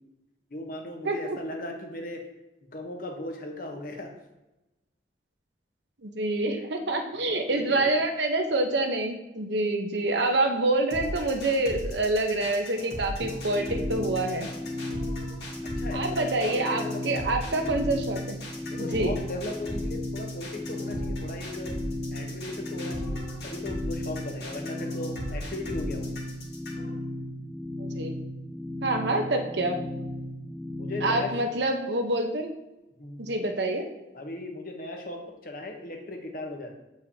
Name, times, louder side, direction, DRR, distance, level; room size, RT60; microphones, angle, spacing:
voice 1, 0.5-2.2 2.7-4.1 7.3-8.0 15.8-17.3 18.7-21.8 22.1-26.1 30.8-31.4 33.0-33.3 34.1-36.7, left 1 dB, 50° left, 3 dB, 1.0 m, -37 dB
voice 2, 1.0-1.4 6.0-14.5 15.9-18.4 18.8-19.1 27.8-28.1 28.8-29.8 31.0-32.5 33.2-33.9, right 2 dB, 70° right, 4 dB, 0.9 m, -27 dB
sound 1, 10.9-26.9, equal, 65° left, 1.9 m, -37 dB
sound 2, 13.2-31.4, left 1 dB, ahead, 0.4 m, -35 dB
8.5 x 4.8 x 2.8 m, 0.98 s
head